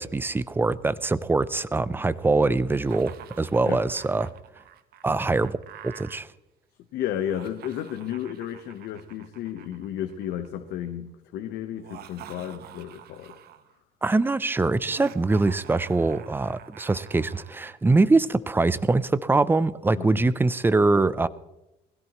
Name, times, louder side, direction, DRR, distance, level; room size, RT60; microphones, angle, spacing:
voice 1, 0.0-4.3 5.0-5.6 5.8-6.3 14.0-21.3, right 3 dB, 10° right, 17 dB, 0.5 m, -23 dB
Laughter, 2.8-6.2 7.2-10.5 11.7-13.7 14.8-17.8, right 11 dB, 70° right, 1.0 m, -47 dB
voice 2, 6.9-13.3 19.9-20.3, left 10 dB, 80° left, 6 dB, 1.1 m, -33 dB
21.0 x 16.0 x 3.1 m, 0.93 s
cardioid pair, 110°, 17 cm